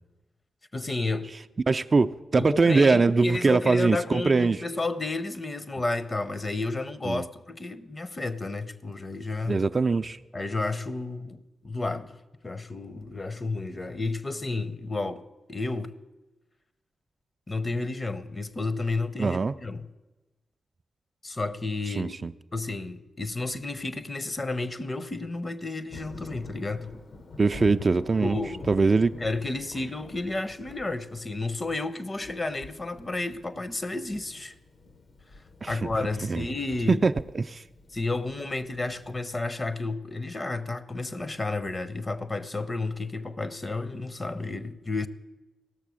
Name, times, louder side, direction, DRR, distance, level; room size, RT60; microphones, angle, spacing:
voice 1, 0.7-1.3 2.4-9.6 10.3-12.2 12.4-16.0 17.5-19.9 21.2-22.1 22.5-26.9 28.2-28.7 29.2-34.5 35.7-37.1 37.9-45.1, left 2 dB, 35° left, 0.7 m, -31 dB
voice 2, 1.7-4.6 7.0-7.3 9.5-10.2 19.2-19.5 22.0-22.3 27.4-28.4 28.7-29.1 35.6-35.8 36.2-36.4 36.9-37.6, right 4 dB, 45° right, 0.3 m, -22 dB
Thunder, 25.9-39.2, left 3 dB, 65° left, 1.0 m, -46 dB
16.5 x 6.6 x 6.2 m
supercardioid pair, 45°, 0 cm